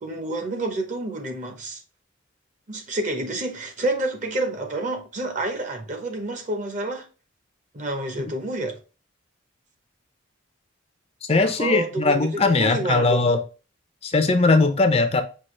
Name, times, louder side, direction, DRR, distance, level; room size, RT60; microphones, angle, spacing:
voice 1, 0.0-1.8 2.7-7.1 7.7-8.8 11.4-12.3 12.6-13.3, right 2 dB, 40° right, 0.8 m, -29 dB
voice 2, 11.2-13.4 14.0-15.2, left 3 dB, 30° left, 0.5 m, -20 dB
5.6 x 2.8 x 3.1 m
head